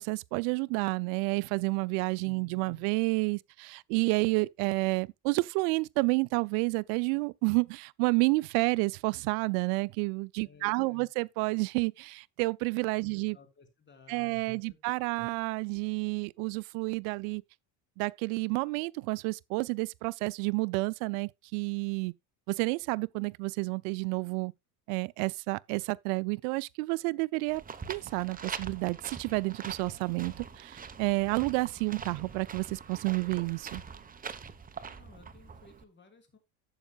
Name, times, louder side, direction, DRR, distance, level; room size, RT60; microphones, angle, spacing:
voice 1, 0.0-13.4 14.1-17.4 18.0-22.1 22.5-24.5 24.9-27.6 27.9-33.8, right 27 dB, 85° right, 0.6 m, -30 dB
voice 2, 2.3-2.8 10.4-11.1 13.0-14.8 15.2-15.3 34.6-36.4, left 4 dB, 25° left, 3.2 m, -58 dB
sound 1, 27.5-35.8, right 6 dB, 20° right, 1.0 m, -43 dB
12.0 x 8.1 x 2.3 m
cardioid pair, 120°, 42 cm